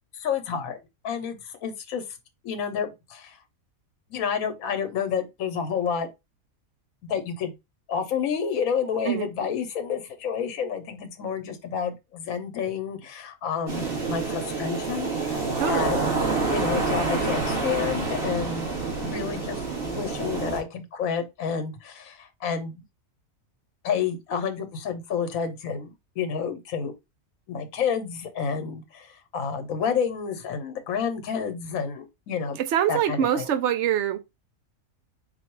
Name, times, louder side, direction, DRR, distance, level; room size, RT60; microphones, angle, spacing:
voice 1, 0.2-0.8 1.0-2.0 2.4-3.4 4.1-6.1 7.0-7.5 7.9-16.0 16.4-22.8 23.8-26.9 27.5-32.6 32.9-33.5, left 7 dB, 75° left, 1.2 m, -30 dB
sound 1, 13.7-20.6, right 3 dB, 40° right, 1.7 m, -27 dB
voice 2, 15.6-15.9 32.6-34.2, right 10 dB, 65° right, 0.8 m, -24 dB
4.1 x 2.3 x 4.5 m
omnidirectional pair, 1.5 m